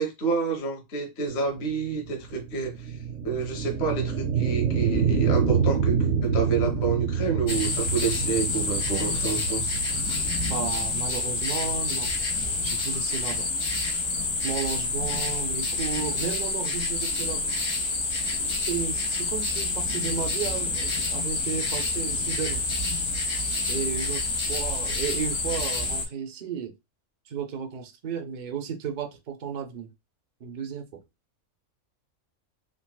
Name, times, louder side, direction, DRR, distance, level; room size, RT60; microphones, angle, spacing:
voice 1, 0.0-9.8, right 5 dB, 55° left, 1.0 m, -29 dB
sound 1, 1.5-12.2, right 6 dB, 90° right, 1.4 m, -27 dB
sound 2, 7.5-26.0, left 3 dB, 80° left, 1.3 m, -28 dB
voice 2, 10.4-13.5 14.4-17.5 18.6-22.7 23.7-26.7 27.3-29.9 30.4-31.0, right 7 dB, 70° right, 0.4 m, -34 dB
3.8 x 2.3 x 2.2 m
omnidirectional pair, 1.5 m